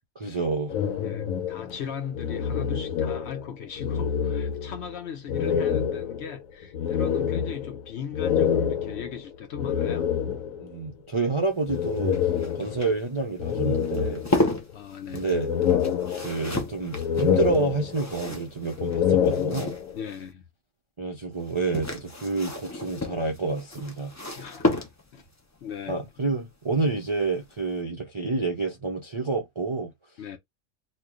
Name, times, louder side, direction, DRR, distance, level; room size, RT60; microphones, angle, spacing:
voice 1, 0.2-0.7 10.6-14.2 15.1-15.5 16.2-19.8 21.0-24.1 25.9-29.9, right 3 dB, 40° right, 0.4 m, -28 dB
sound 1, 0.7-3.5 3.8-4.9 5.3-10.7 11.7-13.0 13.4-14.7 15.1-16.6 16.9-18.2 18.7-20.0, left 8 dB, 85° left, 1.1 m, -27 dB
voice 2, 1.0-10.1 14.7-15.3 19.9-20.4 24.4-25.3 25.6-26.0 30.2-30.4, left 8 dB, 60° left, 0.9 m, -38 dB
sound 2, 11.4-20.3 21.4-25.3 26.9-27.2 27.5-27.6, left 1 dB, 25° left, 0.4 m, -33 dB
3.0 x 2.2 x 3.7 m
omnidirectional pair, 1.4 m